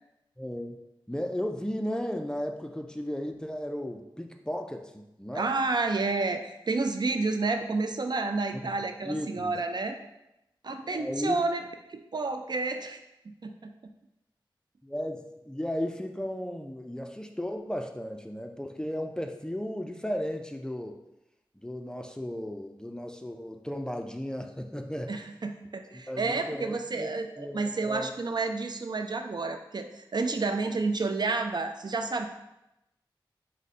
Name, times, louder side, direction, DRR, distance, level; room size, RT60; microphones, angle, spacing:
voice 1, 0.4-0.8 1.1-5.5 7.2-7.3 8.5-8.7 9.0-9.6 10.7-11.4 14.8-21.0 21.5-25.2 25.9-28.1, equal, 10° left, 4 dB, 0.4 m, -35 dB
voice 2, 5.3-10.0 10.6-11.6 11.9-13.0 13.3-13.7 25.1-32.3, right 3 dB, 55° right, 6 dB, 0.3 m, -30 dB
4.7 x 2.2 x 4.1 m, 0.90 s
cardioid pair, 50°, 9 cm